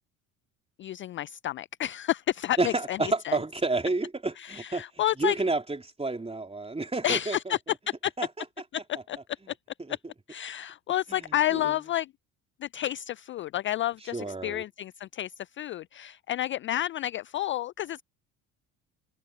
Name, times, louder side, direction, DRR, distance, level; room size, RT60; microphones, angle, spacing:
voice 1, 0.8-3.4 4.4-5.4 7.0-7.6 7.9-8.1 8.7-9.6 9.9-10.0 10.3-12.1 12.6-18.0, left 13 dB, 30° left, 0.3 m, -30 dB
voice 2, 2.6-4.8 5.2-7.5 8.2-8.3 11.1-11.7 14.1-14.6, right 2 dB, 15° right, 3.2 m, -30 dB
hypercardioid pair, 60°, 43 cm